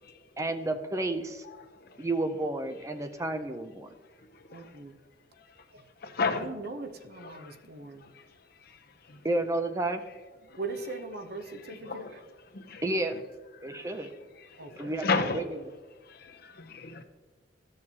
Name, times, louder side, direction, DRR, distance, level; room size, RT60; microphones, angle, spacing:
voice 1, 0.4-1.4 2.0-3.9 9.2-10.0 12.8-13.2 13.6-14.1 14.8-15.4, right 2 dB, 15° right, 0.4 m, -31 dB
voice 2, 4.5-5.0 5.7-5.8 6.3-8.1 10.5-12.2 14.6-15.0, right 3 dB, 55° right, 0.8 m, -40 dB
voice 3, 6.0-6.5 7.2-7.6 8.7-8.8 9.1-9.2 10.5-10.6 11.7-12.1 12.5-12.8 13.6-14.1 14.5-15.4 16.1-17.0, left 4 dB, 55° left, 0.8 m, -33 dB
13.5 x 6.6 x 2.8 m
head